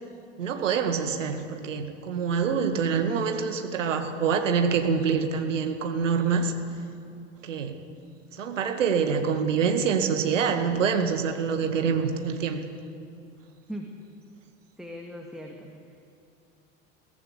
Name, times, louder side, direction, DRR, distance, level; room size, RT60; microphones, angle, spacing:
voice 1, 0.4-6.5 7.4-7.8 8.3-12.6, right 6 dB, 75° right, 6 dB, 2.1 m, -26 dB
voice 2, 14.8-16.0, equal, ahead, 1 dB, 2.2 m, -39 dB
22.0 x 17.0 x 8.2 m, 2.5 s
figure-of-eight pair, 70°, 38 cm